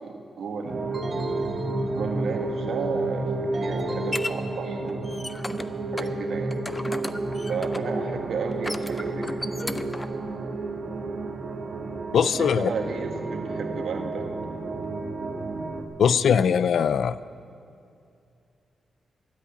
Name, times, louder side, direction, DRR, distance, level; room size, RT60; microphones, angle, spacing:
voice 1, 0.0-1.2 1.9-5.1 5.9-6.5 7.5-9.4 12.2-14.3, right 4 dB, 75° right, 2 dB, 1.6 m, -33 dB
sound 1, 0.7-15.8, right 2 dB, 55° right, 1.3 m, -31 dB
sound 2, 0.9-2.5 3.5-5.1, right 3 dB, 40° right, 0.7 m, -36 dB
sound 3, 3.3-4.3 4.9-5.7 6.0-6.1 6.5-8.0 8.5-10.1, left 1 dB, 15° left, 0.6 m, -34 dB
voice 2, 12.1-12.7 16.0-17.2, left 7 dB, 75° left, 16 dB, 0.4 m, -21 dB
12.5 x 8.2 x 9.8 m, 2.5 s
cardioid pair, 90°, 0 cm